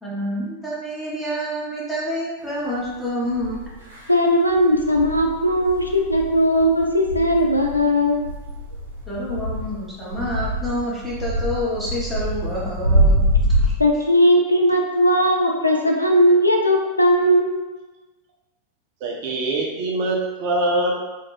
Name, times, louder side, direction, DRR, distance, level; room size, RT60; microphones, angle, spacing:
voice 1, 0.0-3.6 9.1-13.7, equal, ahead, -8 dB, 0.8 m, -28 dB
sound 1, 2.8-2.9 3.4-4.0 4.5-13.7, right 1 dB, 75° right, 0.8 m, -24 dB
voice 2, 4.1-8.3 13.8-17.6, equal, 85° left, 0 dB, 0.4 m, -18 dB
voice 3, 19.0-21.0, right 2 dB, 45° right, -1 dB, 0.6 m, -23 dB
2.4 x 2.1 x 3.1 m, 1.2 s
figure-of-eight pair, 90°, 0 cm